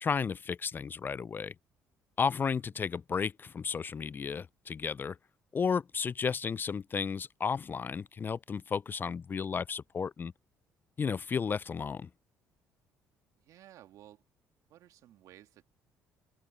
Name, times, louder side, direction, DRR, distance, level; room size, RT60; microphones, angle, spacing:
voice 1, 0.0-1.5 2.2-5.2 5.5-10.3 11.0-12.1, left 6 dB, 35° left, 0.3 m, -33 dB
voice 2, 13.4-14.2 14.7-15.6, right 13 dB, 70° right, 2.7 m, -56 dB
supercardioid pair, 75°, 6 cm